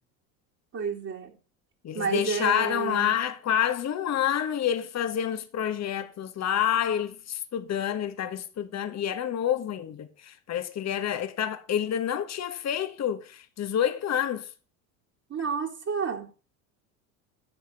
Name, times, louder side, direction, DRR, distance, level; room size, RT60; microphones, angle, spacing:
voice 1, 0.7-1.3 1.9-3.1 15.3-16.3, right 5 dB, 35° right, 2.8 m, -30 dB
voice 2, 1.8-14.5, left 9 dB, 40° left, 1.6 m, -28 dB
10.5 x 6.5 x 6.7 m
hypercardioid pair, 85°, 42 cm